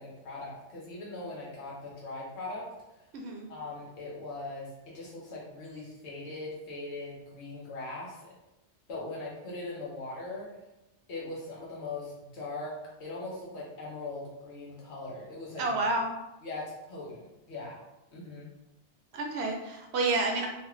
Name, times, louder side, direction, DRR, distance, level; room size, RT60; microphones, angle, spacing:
voice 1, 0.0-2.7 3.5-8.3 8.9-10.5 11.1-15.8 16.4-17.8 18.1-18.5, left 2 dB, 80° left, -4 dB, 1.1 m, -40 dB
voice 2, 3.1-3.5 15.6-16.1 19.1-20.5, right 2 dB, 75° right, 2 dB, 0.8 m, -29 dB
2.6 x 2.4 x 3.0 m, 0.96 s
omnidirectional pair, 1.1 m